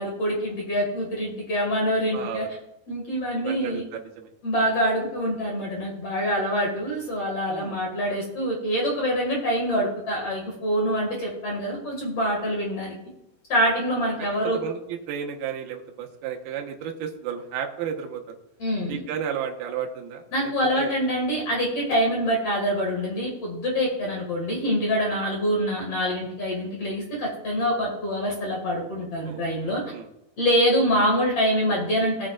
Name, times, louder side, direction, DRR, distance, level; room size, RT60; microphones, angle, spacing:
voice 1, 0.0-2.5 2.9-3.8 4.4-12.9 13.5-14.6 18.6-19.0 20.3-29.8 30.4-32.3, equal, 45° left, -2 dB, 2.2 m, -25 dB
voice 2, 2.1-2.5 3.4-4.3 7.5-7.8 14.4-18.3 18.9-21.0 29.3-30.1, right 8 dB, 70° right, 2 dB, 2.7 m, -33 dB
18.0 x 7.6 x 2.5 m, 0.84 s
omnidirectional pair, 5.3 m